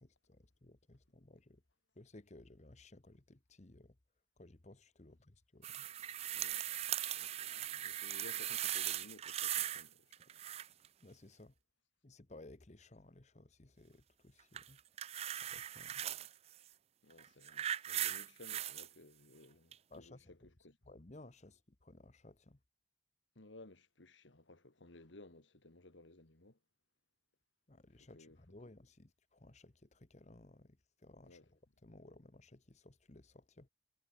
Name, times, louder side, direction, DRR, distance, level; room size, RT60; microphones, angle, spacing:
voice 1, 0.0-1.6 2.0-3.9 4.4-5.9 11.0-11.5 12.0-14.8 15.5-16.0 19.9-20.3 20.9-22.6 27.7-33.7, left 2 dB, 35° left, 1.1 m, -58 dB
sound 1, 5.6-9.9 10.1-10.9 14.5-16.3 17.1-18.9 19.7-19.8, right 12 dB, 35° right, 0.4 m, -39 dB
voice 2, 6.3-6.7 7.0-10.2 16.0-16.3 17.0-20.8 23.4-26.6 28.0-28.4 31.2-31.5, left 2 dB, 80° left, 2.2 m, -58 dB
head